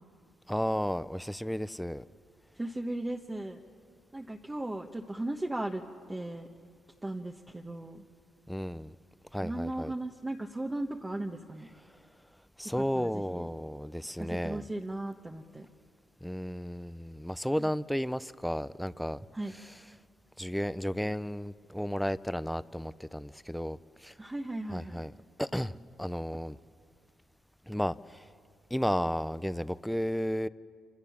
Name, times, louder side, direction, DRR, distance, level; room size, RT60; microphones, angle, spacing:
voice 1, 0.5-2.0 8.5-9.0 9.3-9.9 12.6-14.6 16.2-19.2 20.4-24.1 24.7-25.1 25.4-26.6 27.7-28.2 28.7-30.5, equal, ahead, 16 dB, 0.6 m, -33 dB
voice 2, 2.5-3.6 4.1-5.8 6.1-6.5 7.0-8.0 9.4-11.7 12.6-13.5 14.2-15.7 17.6-17.7 19.3-19.6 24.2-25.0, right 1 dB, 15° right, 2 dB, 1.1 m, -37 dB
27.0 x 26.5 x 7.2 m, 2.2 s
cardioid pair, 100°, 0 cm